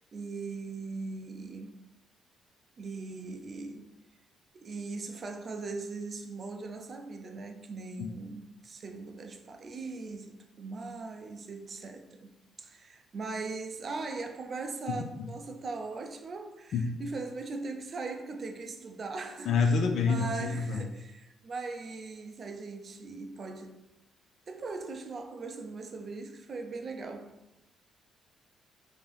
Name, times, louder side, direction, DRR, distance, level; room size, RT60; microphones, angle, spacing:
voice 1, 0.0-1.8 2.8-3.9 4.5-12.3 12.6-23.8 24.5-27.3, right 3 dB, 45° right, 0.4 m, -40 dB
voice 2, 19.5-20.8, left 5 dB, 70° left, 0.4 m, -27 dB
3.7 x 2.8 x 3.3 m
cardioid pair, 90°, 0 cm